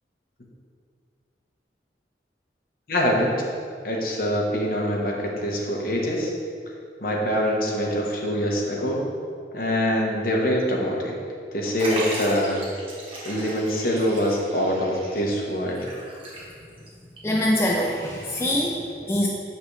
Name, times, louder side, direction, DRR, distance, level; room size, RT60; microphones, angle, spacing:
voice 1, 2.9-3.3 3.8-6.3 7.0-9.0 9.5-11.1 11.5-12.6 13.2-15.9, equal, 50° left, -1 dB, 1.0 m, -24 dB
Liquid, 11.8-16.9 17.2-17.3 18.2-18.3, right 1 dB, 30° right, 1.3 m, -36 dB
voice 2, 17.2-19.3, left 1 dB, 15° left, -2 dB, 0.4 m, -24 dB
7.0 x 5.8 x 3.2 m, 2.2 s
head